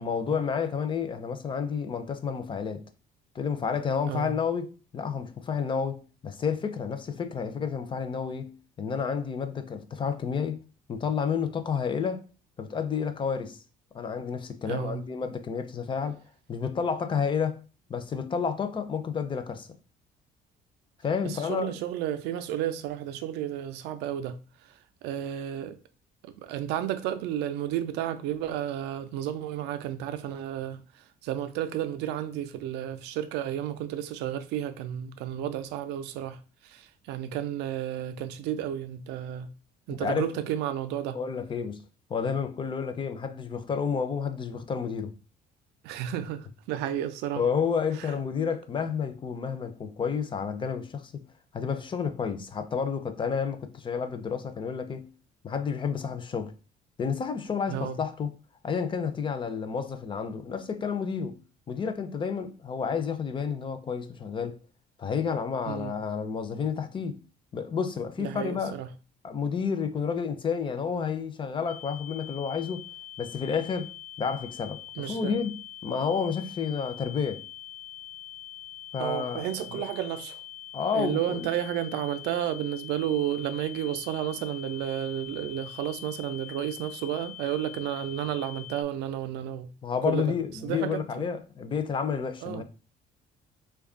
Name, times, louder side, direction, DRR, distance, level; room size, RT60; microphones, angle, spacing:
voice 1, 0.0-2.8 3.3-10.6 10.9-12.3 12.6-13.6 13.9-16.2 16.5-17.6 17.9-19.7 21.0-21.8 39.9-40.3 41.1-41.8 42.1-45.1 47.4-51.2 51.5-55.1 55.4-56.5 57.0-58.3 58.6-61.4 61.7-64.6 65.0-67.2 67.5-68.8 69.2-72.9 73.2-73.9 74.2-77.4 78.9-79.8 80.7-81.5 89.8-92.6, left 6 dB, 30° left, 0.4 m, -30 dB
voice 2, 14.7-15.0 21.2-24.4 24.7-25.8 26.2-39.5 39.9-41.2 45.8-47.4 48.0-48.1 57.7-58.0 65.7-65.9 68.2-68.9 75.0-75.3 79.0-80.4 80.9-89.7 90.1-90.3 90.6-91.3 92.4-92.6, right 11 dB, 90° right, 0.4 m, -32 dB
sound 1, 71.7-88.8, left 13 dB, 65° left, 0.7 m, -44 dB
3.2 x 2.3 x 3.7 m
cardioid pair, 110°, 17 cm